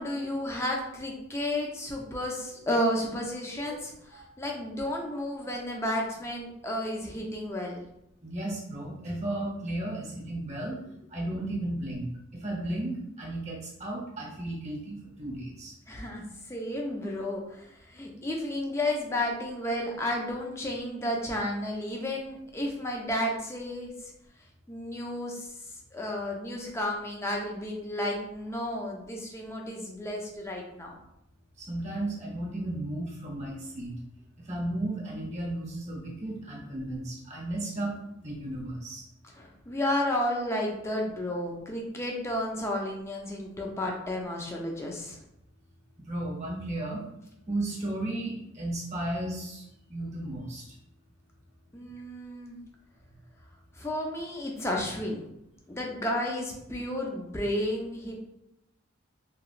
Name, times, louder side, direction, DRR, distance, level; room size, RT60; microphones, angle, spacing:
voice 1, 0.0-7.8 15.9-24.1 24.7-25.5 25.9-31.0 39.3-45.2 51.7-52.6 53.7-55.3 55.7-58.2, left 1 dB, 15° left, -1 dB, 0.4 m, -32 dB
voice 2, 8.2-10.8 11.1-12.1 12.3-15.7 31.6-33.9 34.4-39.0 46.0-47.1 47.5-50.6, right 1 dB, 35° right, -3 dB, 0.8 m, -34 dB
2.9 x 2.3 x 2.4 m, 0.81 s
head